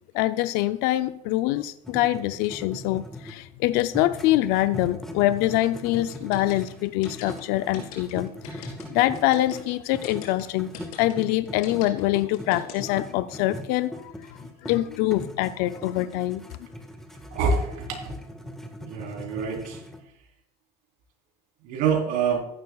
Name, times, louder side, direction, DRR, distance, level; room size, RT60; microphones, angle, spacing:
voice 1, 0.1-10.7 11.0-14.1 14.6-16.4, left 15 dB, 65° left, 12 dB, 0.5 m, -24 dB
sound 1, 1.8-3.5 3.9-10.3 10.6-20.0, equal, ahead, 1.5 m, -40 dB
sound 2, 6.1-13.1, left 10 dB, 80° left, 3.4 m, -42 dB
voice 2, 17.3-18.1 18.8-19.8 21.6-22.4, right 5 dB, 65° right, 1 dB, 3.9 m, -26 dB
14.5 x 11.5 x 2.4 m, 0.76 s
supercardioid pair, 110°, 17 cm